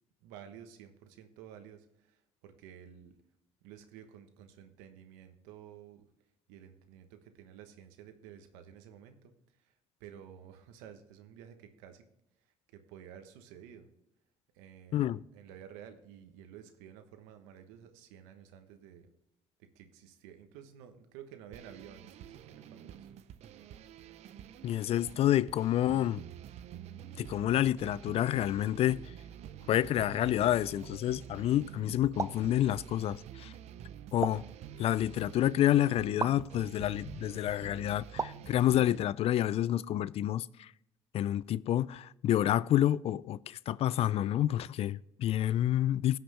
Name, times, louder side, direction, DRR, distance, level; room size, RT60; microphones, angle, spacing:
voice 1, 0.2-3.2 3.6-6.1 6.5-12.1 12.4-13.9 14.5-19.1 19.6-23.1, right 9 dB, 85° right, 1.2 m, -52 dB
sound 1, 21.5-39.0, right 10 dB, 65° right, 0.6 m, -48 dB
voice 2, 24.6-26.2 27.2-29.0 29.7-33.5 34.1-34.4 34.8-40.7 41.1-46.2, left 12 dB, 55° left, 0.4 m, -29 dB
sound 2, 32.2-32.5 34.2-34.5 36.2-36.4 38.2-38.5, right 4 dB, 25° right, 0.5 m, -35 dB
17.0 x 5.9 x 3.4 m
supercardioid pair, 65°, 12 cm